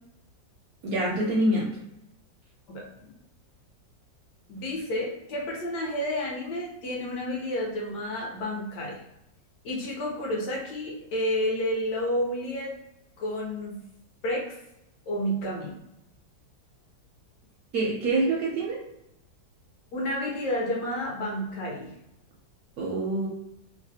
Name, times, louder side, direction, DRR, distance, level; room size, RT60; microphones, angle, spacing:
voice 1, 0.8-1.7 17.7-18.8 22.8-23.3, right 2 dB, 70° right, -3 dB, 0.9 m, -25 dB
voice 2, 2.7-3.1 4.5-9.0 9.6-12.7 13.2-13.8 14.2-14.5 15.1-15.8 19.9-21.9, left 1 dB, 70° left, -2 dB, 1.4 m, -30 dB
3.3 x 2.1 x 2.7 m, 0.85 s
omnidirectional pair, 2.0 m